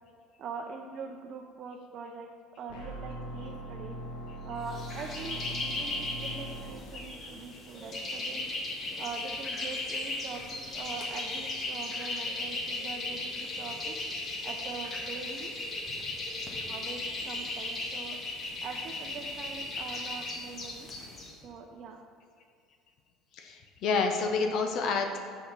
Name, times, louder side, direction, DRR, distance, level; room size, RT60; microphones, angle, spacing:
voice 1, 0.4-2.3 2.6-4.0 4.4-8.5 9.0-14.0 14.4-15.5 16.7-18.2 18.6-20.9 21.4-22.0, right 5 dB, 50° right, 2 dB, 0.6 m, -43 dB
sound 1, 2.7-6.7, right 1 dB, 85° left, 1.6 m, -41 dB
sound 2, 4.7-21.3, left 2 dB, 40° left, 1.6 m, -36 dB
voice 2, 23.3-25.2, left 4 dB, 60° left, 4 dB, 0.8 m, -29 dB
6.3 x 5.7 x 5.9 m, 2.3 s
supercardioid pair, 115°, 0 cm